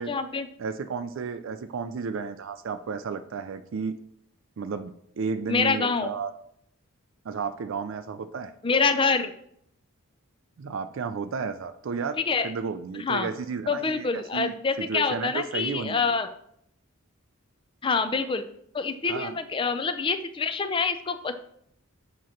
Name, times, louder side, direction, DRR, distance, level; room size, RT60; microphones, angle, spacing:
voice 1, 0.0-0.5 5.5-6.1 8.6-9.3 12.2-12.5 13.0-13.3 13.7-16.3 17.8-18.4 18.7-21.4, left 4 dB, 25° left, 9 dB, 0.4 m, -26 dB
voice 2, 0.6-4.0 4.6-6.3 7.2-8.5 10.6-12.2 12.4-16.2 19.1-19.4, right 5 dB, 60° right, 10 dB, 0.4 m, -33 dB
7.5 x 3.0 x 5.7 m, 0.70 s
head